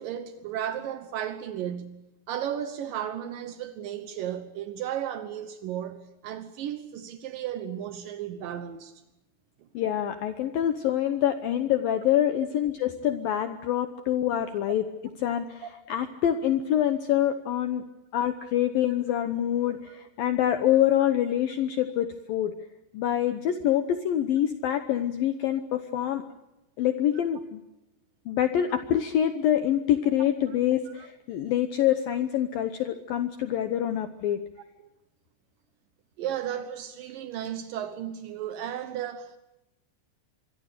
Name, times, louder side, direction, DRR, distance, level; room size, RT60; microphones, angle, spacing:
voice 1, 0.0-2.0 2.3-8.9 15.6-15.7 31.0-31.1 36.2-39.4, right 10 dB, 85° right, 1.9 m, -34 dB
voice 2, 9.7-14.8 15.2-17.8 18.1-22.5 22.9-26.2 26.8-27.6 28.3-34.4, left 11 dB, 85° left, 2.0 m, -26 dB
25.5 x 23.0 x 6.7 m
omnidirectional pair, 5.6 m